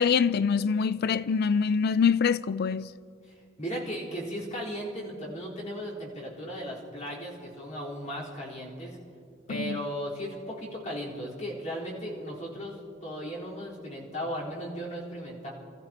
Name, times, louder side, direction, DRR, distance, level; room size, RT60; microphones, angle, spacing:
voice 1, 0.0-2.9 9.6-9.8, left 6 dB, 55° left, 0.4 m, -24 dB
voice 2, 3.2-9.0 9.5-15.5, equal, 40° left, 4.3 m, -36 dB
29.5 x 14.5 x 3.0 m
head